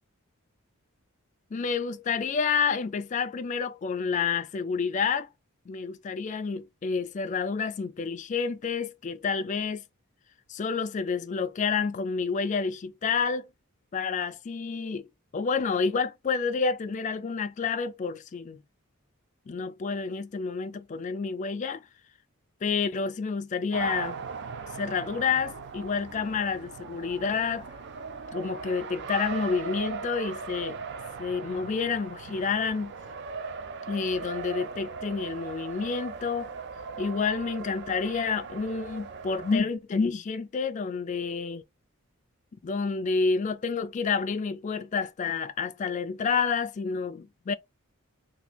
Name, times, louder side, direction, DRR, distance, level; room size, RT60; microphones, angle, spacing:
voice 1, 1.5-5.3 5.7-9.8 10.5-13.5 13.9-15.1 15.3-18.6 19.5-21.8 22.6-24.2 24.8-27.7 28.3-30.8 31.2-32.9 33.9-36.5 37.0-41.6 42.6-47.5, left 5 dB, 35° left, 0.3 m, -29 dB
Race car auto racing, 23.7-39.6, right 5 dB, 50° right, 0.4 m, -39 dB
3.0 x 2.4 x 3.2 m
head